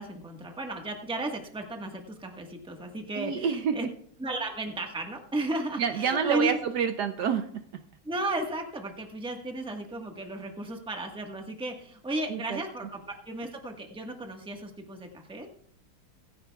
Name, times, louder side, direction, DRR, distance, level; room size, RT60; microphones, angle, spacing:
voice 1, 0.0-3.9 4.2-6.6 8.0-15.5, right 2 dB, 5° right, 3 dB, 1.1 m, -34 dB
voice 2, 3.1-3.8 5.8-7.6 12.3-12.6, right 7 dB, 65° right, 8 dB, 1.1 m, -28 dB
24.5 x 10.5 x 2.3 m, 0.62 s
omnidirectional pair, 2.1 m